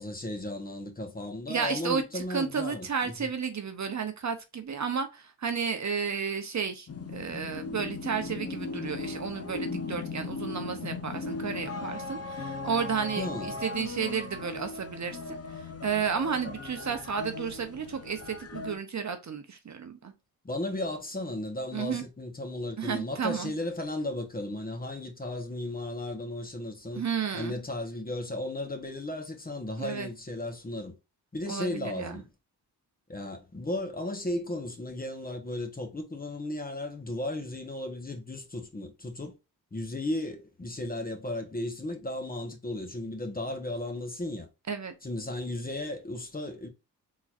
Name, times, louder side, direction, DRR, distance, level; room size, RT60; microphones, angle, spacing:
voice 1, 0.0-3.3 13.2-13.6 20.4-27.0 27.3-30.9 31.3-32.3 33.1-39.3 39.7-44.5 45.0-46.7, left 1 dB, 20° left, 1.1 m, -35 dB
voice 2, 1.5-20.1 21.7-22.0 22.8-23.5 26.9-27.5 29.8-30.1 31.5-32.2 44.7-44.9, right 6 dB, 45° right, 0.8 m, -32 dB
sound 1, 6.9-18.8, left 3 dB, 35° left, 0.8 m, -38 dB
3.8 x 3.1 x 2.4 m
cardioid pair, 80°, 41 cm